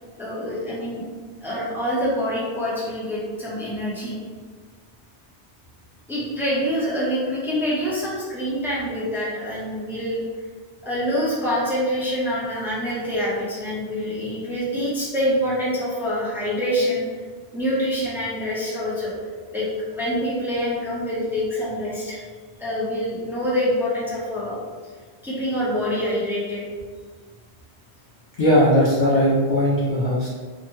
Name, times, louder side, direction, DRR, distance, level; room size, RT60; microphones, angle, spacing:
voice 1, 0.2-1.0 1.4-4.2 6.1-10.2 10.8-17.1 17.5-19.1 19.5-19.7 19.9-22.2 22.6-24.6 25.2-26.7, equal, ahead, -8 dB, 0.6 m, -25 dB
voice 2, 28.4-30.3, equal, 55° left, -6 dB, 0.5 m, -18 dB
3.0 x 2.1 x 3.0 m, 1.5 s
omnidirectional pair, 1.1 m